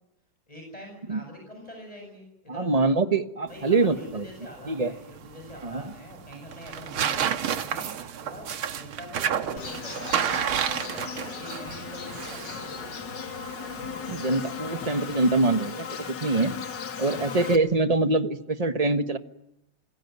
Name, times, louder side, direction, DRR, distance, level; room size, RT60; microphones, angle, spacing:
voice 1, 0.5-2.9 3.5-12.9 16.9-17.3, left 1 dB, 15° left, 2 dB, 7.4 m, -44 dB
voice 2, 2.5-4.3 4.6-4.9 5.6-5.8 14.1-15.9 16.2-16.5 17.0-19.2, right 3 dB, 25° right, 9 dB, 1.0 m, -24 dB
sound 1, 3.5-15.7, right 8 dB, 75° right, 2.1 m, -32 dB
Insect, 9.6-17.6, left 7 dB, 55° left, 2.2 m, -37 dB
27.0 x 22.0 x 9.5 m, 0.86 s
omnidirectional pair, 2.4 m